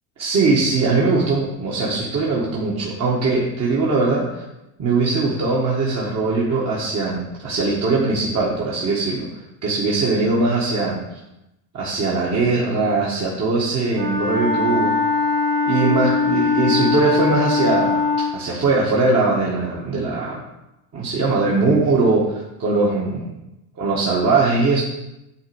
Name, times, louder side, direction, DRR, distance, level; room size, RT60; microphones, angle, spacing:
voice 1, 0.2-4.4 4.8-11.0 11.7-14.9 15.7-20.4 20.9-23.3 23.8-24.8, right 3 dB, 35° right, -5 dB, 2.0 m, -20 dB
Wind instrument woodwind instrument, 13.9-18.3, left 4 dB, 55° right, 2.1 m, -20 dB
10.5 x 4.1 x 7.2 m, 0.92 s
cardioid pair, 120°, 44 cm